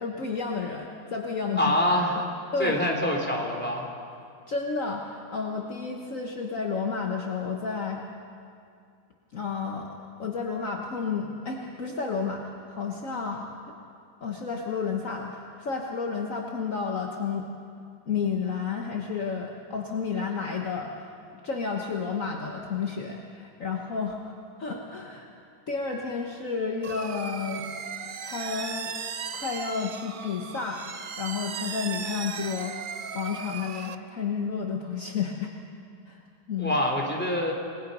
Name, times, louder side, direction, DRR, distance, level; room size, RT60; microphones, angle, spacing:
voice 1, 0.0-1.8 2.5-2.8 4.5-8.0 9.3-9.9 10.2-13.7 14.2-17.5 18.1-24.3 24.6-25.3 25.7-27.7 28.0-28.9 29.3-30.9 31.2-32.8 33.1-35.5 36.1-36.2 36.5-36.8, left 5 dB, 50° left, 0 dB, 1.6 m, -31 dB
voice 2, 1.6-2.2 2.6-3.9 36.6-37.5, left 1 dB, 5° left, 0 dB, 3.2 m, -25 dB
sound 1, 26.8-33.9, right 6 dB, 75° right, 0.4 m, -37 dB
29.5 x 20.0 x 5.5 m, 2.4 s
omnidirectional pair, 1.9 m